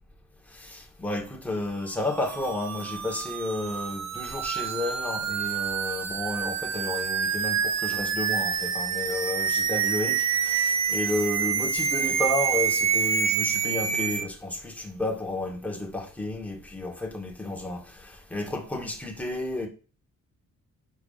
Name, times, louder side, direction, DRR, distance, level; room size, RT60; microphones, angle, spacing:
voice 1, 0.5-19.7, left 2 dB, 5° left, 1.9 m, -32 dB
sound 1, 2.0-14.2, right 7 dB, 55° right, 0.9 m, -27 dB
6.8 x 4.6 x 5.7 m
cardioid pair, 100°, 33 cm